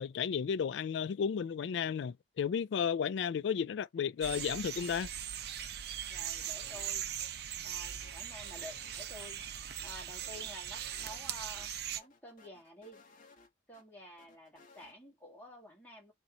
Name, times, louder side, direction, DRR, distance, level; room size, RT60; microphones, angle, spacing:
voice 1, 0.0-5.1, left 7 dB, 75° left, 0.3 m, -33 dB
sound 1, 4.2-12.0, right 9 dB, 60° right, 0.6 m, -40 dB
voice 2, 6.1-7.3 7.6-13.0 13.7-16.1, left 1 dB, 10° left, 2.1 m, -51 dB
sound 2, 6.4-6.9 7.2-7.3 7.6-9.5 9.8-11.3 11.6-11.7 12.0-13.8 14.2-14.9, left 4 dB, 45° left, 1.3 m, -60 dB
4.1 x 3.0 x 3.8 m
head